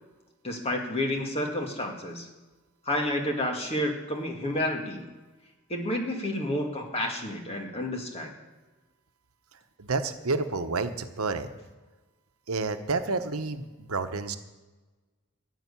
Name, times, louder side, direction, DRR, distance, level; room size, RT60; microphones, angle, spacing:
voice 1, 0.4-2.3 2.9-5.1 5.7-8.3, left 1 dB, 30° left, 2 dB, 2.1 m, -30 dB
voice 2, 9.8-11.5 12.5-14.4, right 3 dB, 80° right, 8 dB, 1.0 m, -30 dB
14.0 x 6.5 x 9.8 m, 1.2 s
head